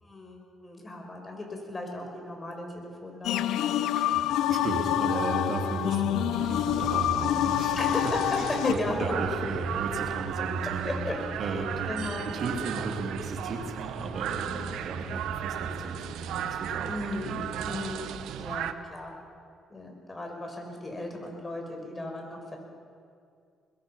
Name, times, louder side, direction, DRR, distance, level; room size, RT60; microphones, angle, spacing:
voice 1, 0.0-3.7 7.8-9.1 10.4-10.5 10.8-12.3 16.9-19.1 19.7-22.6, left 1 dB, 25° left, 2 dB, 5.1 m, -36 dB
sound 1, 3.2-8.7, left 12 dB, 85° left, 0.6 m, -27 dB
voice 2, 3.9-7.8 8.4-11.0 11.4-16.9 17.2-17.7, right 3 dB, 60° right, 2 dB, 3.3 m, -34 dB
sound 2, 6.4-18.7, right 10 dB, 85° right, 0.9 m, -36 dB
22.0 x 21.0 x 5.8 m, 2.3 s
cardioid pair, 90°, 0 cm